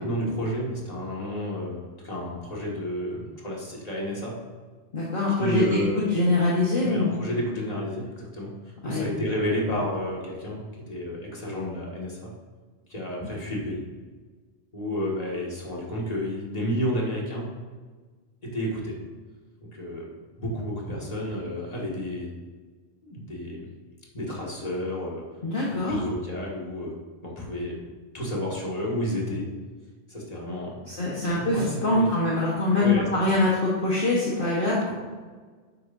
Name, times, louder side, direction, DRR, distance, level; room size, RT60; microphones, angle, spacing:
voice 1, 0.0-4.4 5.4-6.0 6.8-8.5 8.8-12.3 12.9-13.8 14.7-17.5 18.4-19.0 19.7-20.1 20.4-22.3 23.0-23.7 24.1-25.2 25.7-27.0 27.2-27.8 28.1-29.5 30.1-30.9 31.2-32.1 32.8-33.1, equal, 35° left, -4 dB, 2.3 m, -31 dB
voice 2, 4.9-5.8 6.1-7.1 8.8-9.1 25.4-26.0 30.9-34.9, left 2 dB, 50° left, -6 dB, 1.7 m, -24 dB
11.5 x 9.5 x 2.8 m, 1.4 s
omnidirectional pair, 1.2 m